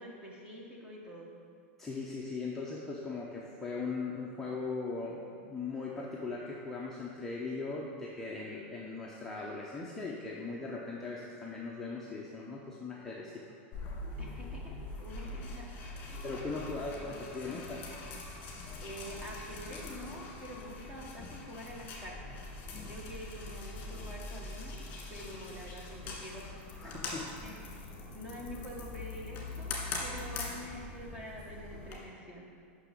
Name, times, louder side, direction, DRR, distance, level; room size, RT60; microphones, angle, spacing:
voice 1, 0.0-1.3 14.2-15.7 16.1-16.3 16.8-17.2 18.8-22.5 22.8-24.8 25.1-26.5 26.8-27.0 27.4-32.5, equal, 15° right, -2 dB, 1.4 m, -46 dB
voice 2, 1.8-13.6 13.9-14.1 16.2-18.4 18.6-18.8 26.8-27.3, left 3 dB, 5° left, -5 dB, 0.7 m, -39 dB
sound 1, 13.7-32.0, left 3 dB, 30° left, 1.9 m, -43 dB
6.7 x 6.1 x 7.5 m, 2.3 s
supercardioid pair, 160°, 7 cm